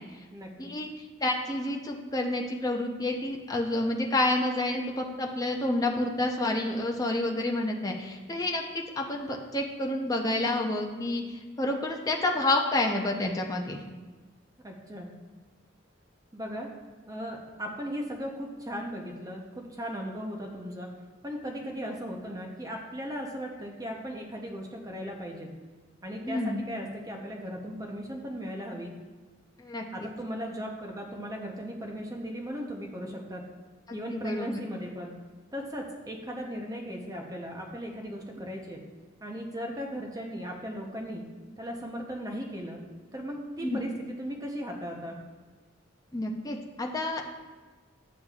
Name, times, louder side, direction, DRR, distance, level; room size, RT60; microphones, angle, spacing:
voice 1, 0.3-0.7 14.6-15.1 16.3-16.7 17.1-20.9 21.2-25.5 26.0-28.9 29.9-33.4 33.9-35.1 35.5-38.8 39.2-41.3 41.6-42.8 43.1-45.2, equal, 20° right, 0 dB, 0.7 m, -37 dB
voice 2, 1.2-13.8 26.2-26.6 29.6-30.1 33.9-34.6 43.6-43.8 46.1-47.2, left 2 dB, 20° left, 1 dB, 0.6 m, -29 dB
9.2 x 7.2 x 2.4 m, 1.3 s
head